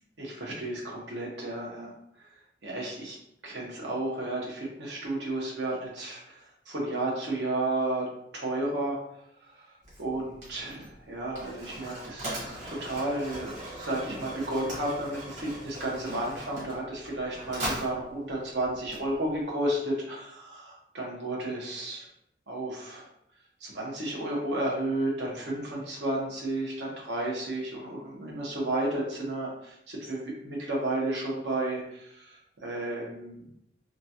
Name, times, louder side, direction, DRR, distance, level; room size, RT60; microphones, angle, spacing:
voice 1, 0.2-1.9 2.6-3.2 3.4-6.4 6.7-8.1 8.3-9.0 9.4-9.7 10.0-22.1 22.5-23.1 23.6-29.5 29.9-33.6, right 1 dB, 85° right, -3 dB, 1.0 m, -32 dB
Mechanisms, 9.8-19.5, right 1 dB, 45° right, 1.1 m, -40 dB
3.0 x 2.4 x 2.7 m, 0.74 s
head